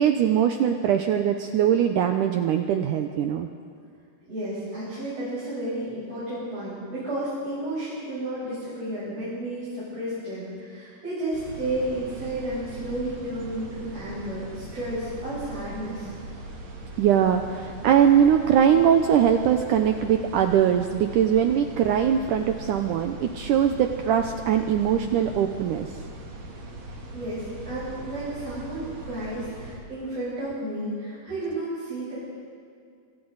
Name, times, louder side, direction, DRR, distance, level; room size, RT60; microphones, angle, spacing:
voice 1, 0.0-3.5 17.0-25.9, right 9 dB, 90° right, 5 dB, 1.8 m, -21 dB
voice 2, 4.3-16.1 27.1-32.2, right 1 dB, 40° right, -11 dB, 8.4 m, -32 dB
sound 1, 11.3-29.8, right 1 dB, 70° right, 4.9 m, -40 dB
26.5 x 25.5 x 4.1 m, 2.3 s
omnidirectional pair, 4.7 m